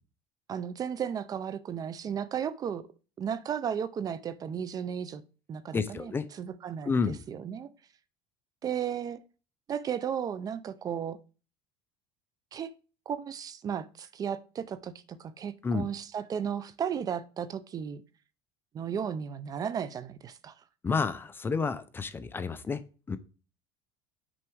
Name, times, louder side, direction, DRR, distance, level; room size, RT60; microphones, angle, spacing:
voice 1, 0.5-2.8 3.2-5.2 5.5-7.7 8.6-9.2 9.7-11.2 12.5-12.7 13.1-18.0 18.7-20.5, right 8 dB, 30° right, 0.5 m, -34 dB
voice 2, 5.7-6.3 6.8-7.2 15.6-15.8 20.8-22.8 23.1-23.2, left 5 dB, 20° left, 0.5 m, -30 dB
6.2 x 4.6 x 4.6 m
cardioid pair, 135°, 12 cm